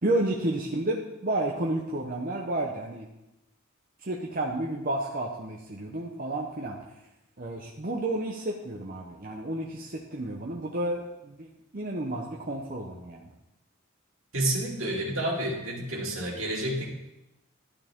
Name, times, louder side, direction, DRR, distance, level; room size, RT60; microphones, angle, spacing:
voice 1, 0.0-3.1 4.0-6.8 7.4-13.2, right 1 dB, 40° right, -1 dB, 0.8 m, -31 dB
voice 2, 14.3-16.9, right 1 dB, 70° right, -2 dB, 2.5 m, -29 dB
12.0 x 9.5 x 3.7 m, 0.94 s
head